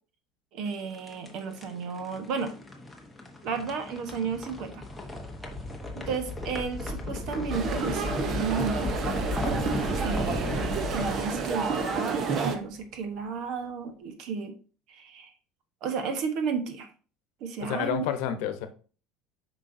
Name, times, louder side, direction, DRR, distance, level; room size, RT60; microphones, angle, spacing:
voice 1, 0.5-2.5 3.4-4.8 5.9-8.9 10.0-14.5 14.9-15.3 15.8-16.9 17.4-18.1, right 5 dB, 50° right, 7 dB, 1.1 m, -33 dB
sound 1, 0.7-12.7, left 1 dB, 5° left, 1.0 m, -35 dB
sound 2, 7.5-12.6, right 5 dB, 30° right, 0.8 m, -30 dB
voice 2, 17.6-18.7, left 9 dB, 70° left, 9 dB, 0.9 m, -29 dB
7.4 x 5.2 x 2.7 m, 0.38 s
cardioid pair, 165°, 0 cm